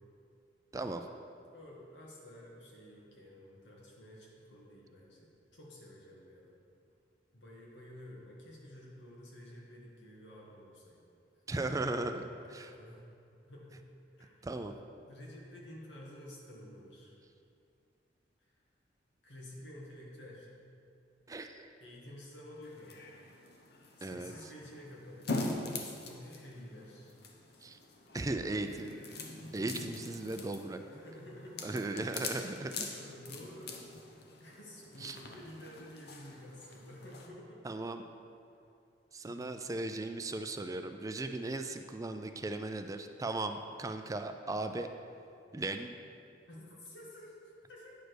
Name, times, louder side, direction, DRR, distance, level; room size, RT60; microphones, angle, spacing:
voice 1, 1.5-6.5 7.3-11.0 12.2-13.1 13.4-13.8 14.2-14.5 15.0-17.2 18.5-18.6 19.2-20.5 21.8-23.0 24.0-25.5 25.8-27.1 30.9-32.0 32.4-33.8 34.1-37.6 39.2-39.5 46.5-48.0, left 1 dB, 85° left, -4 dB, 2.0 m, -51 dB
voice 2, 11.5-12.2 12.5-12.7 14.4-14.7 21.3-21.7 24.0-24.3 27.6-27.8 28.1-29.0 29.5-31.0 31.6-32.9 35.0-35.2 37.6-38.0 39.1-44.9 45.5-46.0, right 2 dB, 20° right, 7 dB, 0.4 m, -37 dB
sound 1, 22.6-37.3, left 3 dB, 65° left, 0.9 m, -44 dB
9.1 x 5.1 x 6.2 m, 2.5 s
head